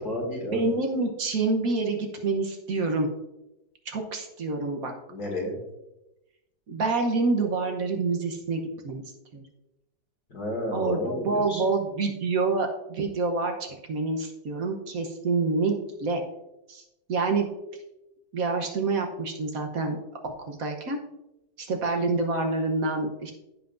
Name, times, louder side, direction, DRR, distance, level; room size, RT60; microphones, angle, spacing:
voice 1, 0.0-0.6 5.1-5.6 10.3-11.6, left 1 dB, 65° left, -1 dB, 2.7 m, -31 dB
voice 2, 0.5-3.1 3.9-4.9 6.7-9.0 9.3-9.4 10.7-16.2 16.7-16.8 17.1-17.5 18.3-20.0 20.2-21.0 21.6-23.3, right 3 dB, 60° right, 3 dB, 1.3 m, -27 dB
15.0 x 5.8 x 2.6 m, 0.93 s
omnidirectional pair, 1.8 m